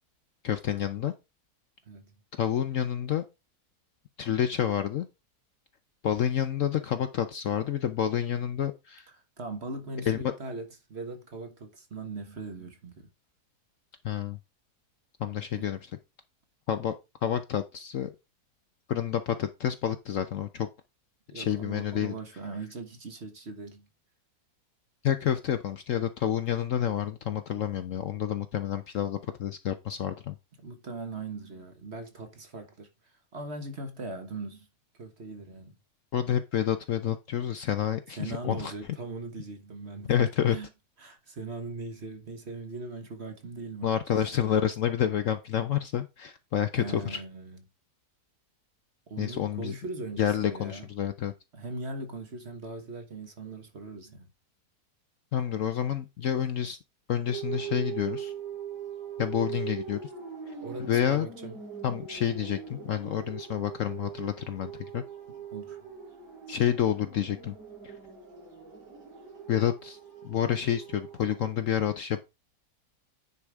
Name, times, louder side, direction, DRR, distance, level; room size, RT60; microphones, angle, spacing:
voice 1, 0.4-1.1 2.4-3.2 4.2-5.1 6.0-9.1 10.1-10.3 14.0-14.4 15.2-15.9 16.7-16.9 17.2-18.1 18.9-20.7 21.3-22.1 25.0-30.4 36.1-38.7 40.1-40.6 43.8-47.2 49.2-49.7 50.2-51.3 55.3-56.8 57.1-58.3 59.2-60.1 60.5-60.6 60.9-61.3 61.8-65.0 66.5-67.5 67.8-67.9 69.5-70.0 70.2-72.2, left 10 dB, 60° left, 0.9 m, -29 dB
voice 2, 9.4-13.1 15.5-15.7 21.3-23.9 30.6-32.9 33.3-34.7 35.0-35.8 38.1-40.1 40.5-40.7 41.0-43.9 46.8-47.6 49.1-50.9 51.5-54.3 60.6-61.6 65.5-65.9, right 3 dB, 40° right, 1.5 m, -40 dB
sound 1, 57.3-71.6, right 8 dB, 65° right, 5.5 m, -41 dB
9.6 x 4.8 x 3.5 m
omnidirectional pair, 1.8 m